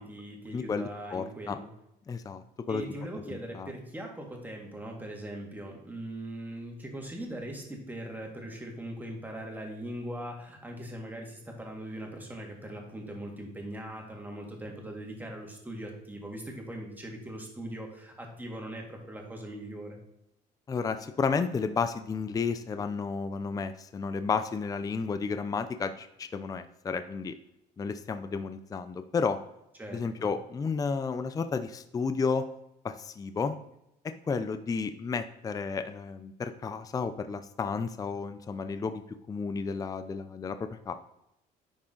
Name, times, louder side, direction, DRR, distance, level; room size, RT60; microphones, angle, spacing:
voice 1, 0.0-1.7 2.7-20.0 29.8-30.3, right 1 dB, 10° right, 0 dB, 1.9 m, -40 dB
voice 2, 0.5-1.6 2.1-2.4 2.7-2.8 3.3-3.7 20.7-27.3 27.8-29.4 29.9-32.5 32.8-33.6 34.3-39.0 39.3-40.6 40.9-41.0, left 5 dB, 20° left, 10 dB, 0.4 m, -32 dB
10.0 x 3.7 x 3.8 m, 0.83 s
cardioid pair, 110°, 17 cm